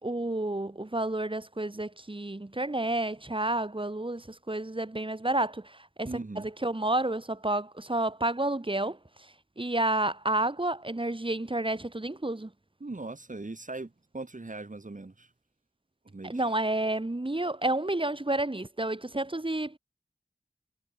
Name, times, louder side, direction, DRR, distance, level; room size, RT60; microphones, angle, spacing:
voice 1, 0.0-6.1 6.4-9.0 9.6-12.5 16.2-19.8, right 2 dB, 35° right, 3.3 m, -30 dB
voice 2, 6.0-6.5 12.8-15.3 16.0-16.4, right 2 dB, 55° right, 6.2 m, -40 dB
wide cardioid pair, 45°, 16 cm